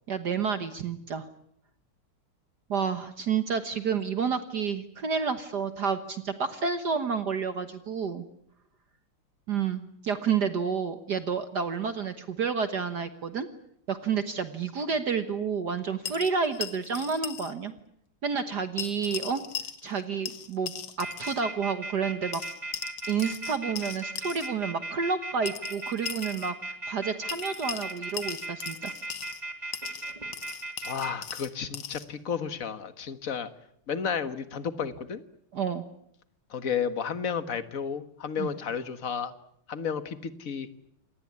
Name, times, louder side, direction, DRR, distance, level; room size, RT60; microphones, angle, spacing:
voice 1, 0.1-1.3 2.7-8.3 9.5-13.5 13.9-17.7 18.2-19.4 19.8-20.7 21.0-22.4 23.1-26.6 26.9-28.9 35.5-35.9 38.4-38.5, right 6 dB, 55° right, 10 dB, 1.7 m, -30 dB
sound 1, 16.0-17.5 17.8-17.9 18.8-20.0 20.3-21.4 22.3-24.5 25.5-26.5 27.3-29.4 29.7-32.1, left 8 dB, 70° left, 2.3 m, -38 dB
sound 2, 21.0-31.1, right 2 dB, 20° right, 3.1 m, -36 dB
voice 2, 30.8-33.5 33.9-35.2 36.5-39.3 39.7-40.9, left 7 dB, 40° left, 11 dB, 1.7 m, -32 dB
27.5 x 19.5 x 9.6 m, 0.74 s
omnidirectional pair, 2.4 m